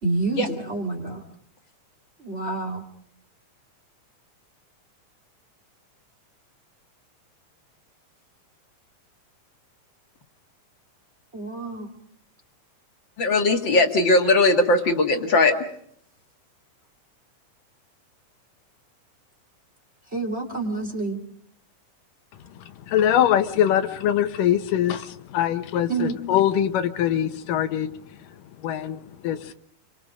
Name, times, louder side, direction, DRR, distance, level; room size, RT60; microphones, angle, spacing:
voice 1, 0.0-1.2 2.2-2.8 11.3-11.9 20.1-21.2 25.9-26.2, right 3 dB, 20° right, 3 dB, 2.5 m, -28 dB
voice 2, 13.2-15.7, left 2 dB, 40° left, 4 dB, 2.1 m, -19 dB
voice 3, 22.9-27.9 28.6-29.5, left 10 dB, 90° left, 9 dB, 2.8 m, -23 dB
30.0 x 24.0 x 5.2 m, 0.65 s
omnidirectional pair, 3.7 m